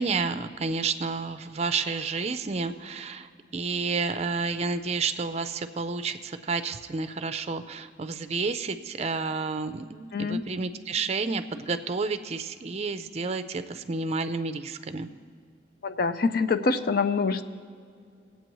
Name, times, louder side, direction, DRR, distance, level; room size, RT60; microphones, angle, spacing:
voice 1, 0.0-15.1, right 4 dB, 35° right, 11 dB, 0.5 m, -30 dB
voice 2, 10.1-10.4 15.8-17.4, left 4 dB, 55° left, 11 dB, 0.5 m, -25 dB
21.0 x 8.3 x 3.1 m, 2.3 s
head